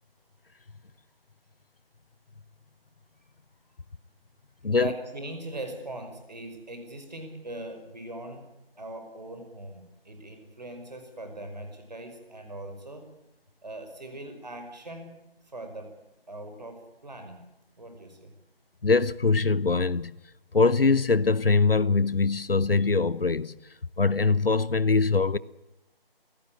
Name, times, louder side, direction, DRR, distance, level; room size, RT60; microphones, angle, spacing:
voice 1, 4.7-8.5 8.8-13.1 13.6-15.2 15.5-15.9 16.3-17.4 17.8-18.3, right 1 dB, 45° right, 5.4 m, -40 dB
voice 2, 18.8-20.2 20.5-23.5 24.0-25.4, left 4 dB, 70° left, 0.9 m, -22 dB
28.0 x 17.0 x 8.6 m
figure-of-eight pair, 165°, 30 cm